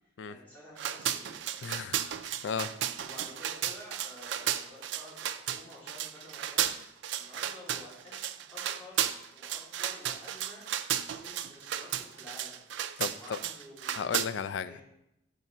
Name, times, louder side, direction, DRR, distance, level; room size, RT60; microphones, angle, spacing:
voice 1, 0.2-1.4 3.0-12.6 13.1-14.1 14.6-14.8, left 1 dB, 10° left, -10 dB, 2.9 m, -51 dB
sound 1, 0.8-14.3, right 10 dB, 60° right, 0.3 m, -34 dB
voice 2, 1.6-2.2 2.4-2.7 13.0-13.4 13.9-14.8, left 6 dB, 60° left, 14 dB, 0.3 m, -34 dB
5.4 x 5.1 x 5.8 m, 0.85 s
head